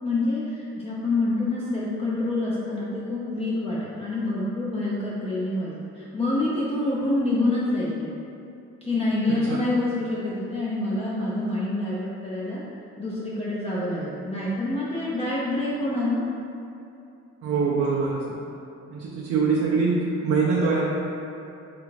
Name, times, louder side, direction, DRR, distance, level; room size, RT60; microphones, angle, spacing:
voice 1, 0.0-8.1 8.8-12.6 13.0-16.3, left 2 dB, 20° left, -8 dB, 0.5 m, -27 dB
voice 2, 9.3-9.6 17.4-18.4 18.9-20.8, right 4 dB, 50° right, -5 dB, 0.5 m, -24 dB
3.3 x 2.5 x 3.1 m, 2.7 s
cardioid pair, 90°, 30 cm